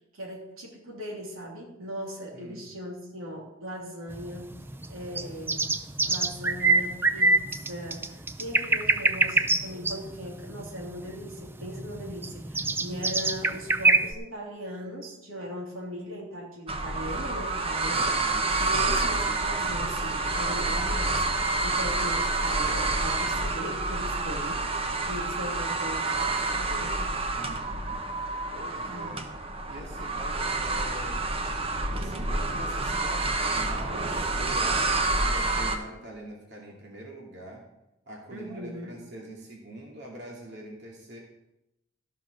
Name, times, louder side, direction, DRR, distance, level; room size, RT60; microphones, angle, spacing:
voice 1, 0.1-4.5 4.9-5.6 6.1-24.6 25.0-27.1 28.9-29.3 38.3-39.0, equal, 85° right, -2 dB, 3.2 m, -39 dB
voice 2, 2.3-2.7 17.9-18.5 27.3-28.0 28.5-29.2 29.7-31.2 31.9-37.6 38.1-41.2, right 1 dB, 55° right, -2 dB, 2.5 m, -44 dB
sound 1, 4.1-14.1, right 3 dB, 10° right, 0.4 m, -25 dB
sound 2, 16.7-35.8, right 3 dB, 30° right, 1.0 m, -28 dB
14.5 x 5.9 x 6.4 m, 0.90 s
head